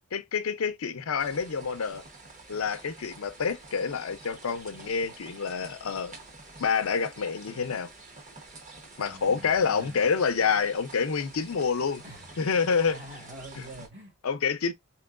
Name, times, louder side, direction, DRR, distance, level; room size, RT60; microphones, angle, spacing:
voice 1, 0.1-2.0 2.5-6.1 6.6-7.9 9.0-12.0 12.4-13.0 13.6-13.7 14.2-14.7, left 5 dB, 90° left, 0.6 m, -28 dB
sound 1, 1.2-13.9, right 2 dB, 35° right, 1.0 m, -48 dB
voice 2, 8.9-10.0 12.0-12.4 12.9-14.1, equal, 55° right, 1.9 m, -46 dB
4.3 x 3.0 x 2.4 m
head